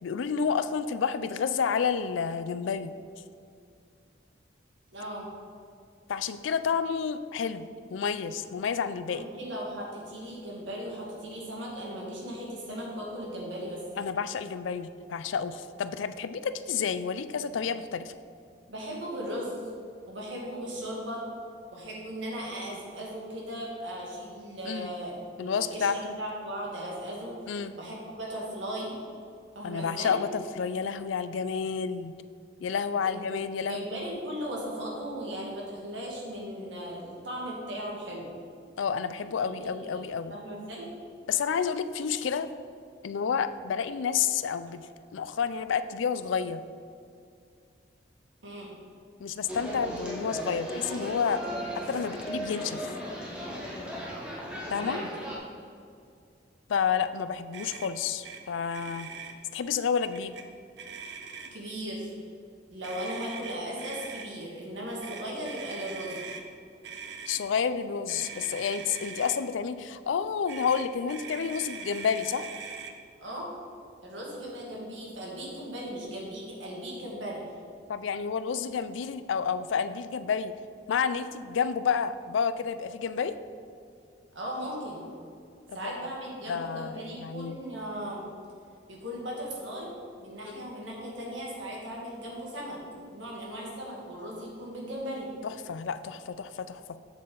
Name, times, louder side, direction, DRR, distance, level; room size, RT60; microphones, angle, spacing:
voice 1, 0.0-2.9 6.1-9.2 14.0-18.1 24.6-24.9 25.4-26.2 27.5-27.8 29.6-32.1 32.6-33.9 38.8-40.3 41.3-42.5 43.0-46.6 49.2-51.4 51.9-52.9 54.7-55.0 56.7-59.1 59.5-60.4 67.3-72.5 77.9-80.5 80.9-83.3 85.7-85.9 86.5-87.6 90.4-90.7 95.4-96.8, left 6 dB, 90° left, 12 dB, 0.4 m, -30 dB
voice 2, 4.9-5.3 9.1-13.8 18.7-19.6 20.1-21.2 21.7-27.4 27.8-28.9 29.5-30.2 33.0-33.2 33.7-38.3 39.2-40.9 48.4-48.7 54.7-55.1 61.5-62.1 62.7-66.2 73.2-73.5 74.0-77.4 84.3-85.1 85.7-88.3 88.9-89.9 90.2-95.3, equal, 85° right, -3 dB, 2.0 m, -37 dB
sound 1, 49.5-55.4, equal, 5° right, 1.3 m, -36 dB
Motor vehicle (road), 57.5-57.9 58.2-58.4 58.7-59.3 60.1-60.4 60.8-61.7 62.8-64.3 65.0-66.4 66.8-67.4 68.1-69.4 70.5-72.9, right 5 dB, 65° right, 0.7 m, -42 dB
7.5 x 7.4 x 3.9 m, 2.4 s
head